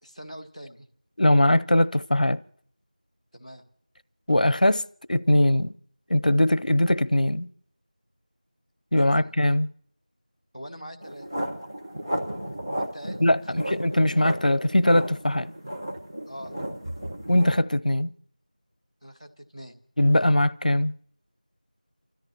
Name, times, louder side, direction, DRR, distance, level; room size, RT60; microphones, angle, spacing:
voice 1, 0.0-0.9 3.3-3.6 9.1-9.3 10.5-11.3 12.7-13.2 13.6-13.8 16.3-16.5 19.0-19.8, equal, 5° right, 0.7 m, -42 dB
voice 2, 1.2-2.4 4.3-4.8 5.1-5.7 6.1-7.5 8.9-9.7 13.2-15.5 17.3-18.1 20.0-20.9, left 1 dB, 80° left, 0.7 m, -21 dB
sound 1, 11.0-17.6, equal, 25° right, 1.2 m, -34 dB
29.5 x 13.5 x 2.9 m
figure-of-eight pair, 175°, 4 cm